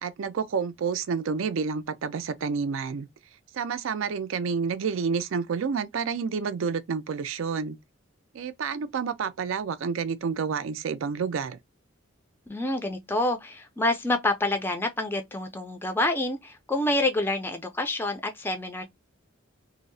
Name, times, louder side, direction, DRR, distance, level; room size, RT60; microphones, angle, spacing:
voice 1, 0.0-3.1 3.5-7.8 8.3-11.6, right 5 dB, 65° right, 0.4 m, -29 dB
voice 2, 12.5-18.8, left 2 dB, 10° left, 0.4 m, -27 dB
2.6 x 2.0 x 2.5 m
head